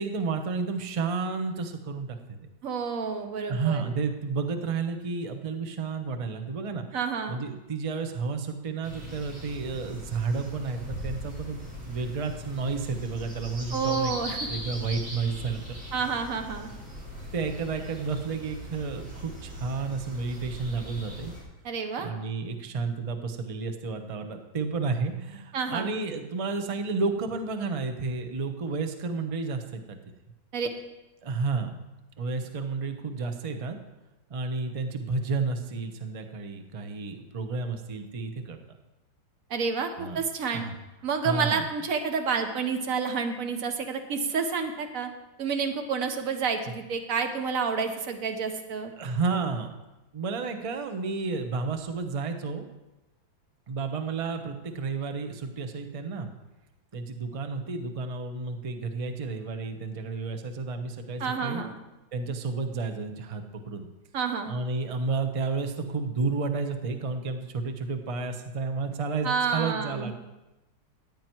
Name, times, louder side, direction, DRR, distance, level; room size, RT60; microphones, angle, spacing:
voice 1, 0.0-2.2 3.5-6.9 7.3-11.6 11.9-14.1 14.5-15.8 17.3-21.3 22.0-30.0 31.2-31.7 32.2-33.8 34.3-38.6 40.0-40.2 40.5-40.8 41.2-41.7 49.0-49.8 50.1-52.7 53.7-56.3 56.9-61.6 62.1-63.9 64.5-70.1, right 4 dB, 35° right, 6 dB, 0.5 m, -31 dB
voice 2, 2.6-3.8 6.9-7.4 13.7-14.5 15.9-16.7 21.6-22.1 25.5-25.9 30.5-30.7 39.5-40.7 41.0-45.1 45.4-48.9 61.2-61.8 64.1-64.5 69.2-70.1, right 5 dB, 50° right, 6 dB, 1.4 m, -29 dB
sound 1, 8.8-21.4, equal, 75° right, 5.7 m, -40 dB
14.5 x 9.4 x 4.6 m, 1.0 s
omnidirectional pair, 2.1 m